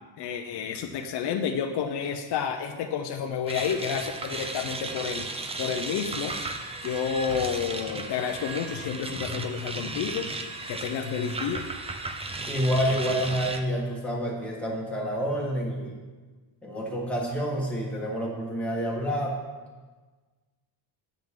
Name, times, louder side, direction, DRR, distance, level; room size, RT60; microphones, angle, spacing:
voice 1, 0.2-5.3 5.6-6.3 6.8-10.3 10.7-11.6, left 7 dB, 55° left, 4 dB, 0.6 m, -30 dB
sound 1, 3.5-13.6, right 3 dB, 15° right, 0.3 m, -35 dB
voice 2, 12.5-15.9 16.6-19.4, equal, ahead, -4 dB, 1.5 m, -28 dB
9.2 x 8.8 x 3.7 m, 1.4 s
cardioid pair, 165°, 50 cm